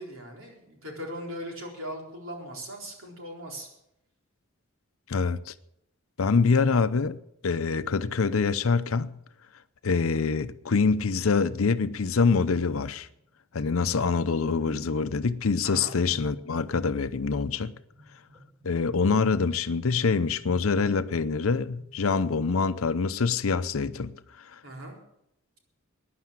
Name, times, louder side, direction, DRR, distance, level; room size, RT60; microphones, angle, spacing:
voice 1, 0.0-3.7 15.6-16.0 24.6-25.0, equal, 70° right, 4.1 m, -39 dB
voice 2, 5.1-5.5 6.2-7.2 7.4-9.1 9.8-13.1 13.5-17.7 18.6-24.1, left 4 dB, 85° left, 0.7 m, -25 dB
sound 1, 13.1-13.3 13.6-15.3 15.8-22.0, left 1 dB, 30° right, 6.6 m, -54 dB
15.5 x 10.5 x 7.4 m
head